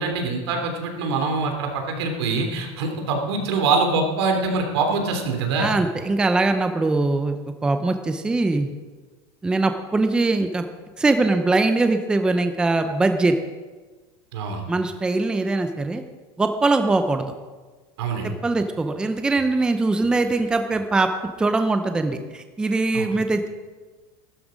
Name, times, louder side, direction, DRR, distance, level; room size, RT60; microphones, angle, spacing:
voice 1, 0.0-5.7 14.3-14.6 18.0-18.3 22.9-23.1, right 3 dB, 90° right, 3 dB, 3.1 m, -24 dB
voice 2, 5.6-7.4 7.6-8.7 9.4-10.7 11.0-13.4 14.7-16.0 16.4-17.3 18.2-21.1 21.4-23.5, right 3 dB, 5° right, 7 dB, 0.6 m, -22 dB
13.5 x 12.5 x 5.2 m, 1.3 s
supercardioid pair, 175°, 13 cm